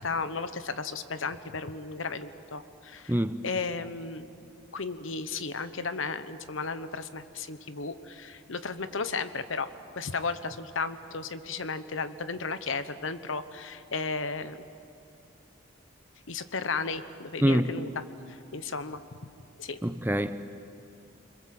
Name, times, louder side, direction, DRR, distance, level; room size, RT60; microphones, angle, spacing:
voice 1, 0.0-3.2 3.4-4.3 4.7-9.7 10.0-14.6 16.3-17.9 18.3-19.0 19.6-19.8, left 4 dB, 80° left, 12 dB, 1.1 m, -34 dB
voice 2, 3.1-3.4 17.4-17.7 19.8-20.5, equal, 10° right, 11 dB, 0.7 m, -25 dB
29.5 x 22.0 x 7.8 m, 2.5 s
head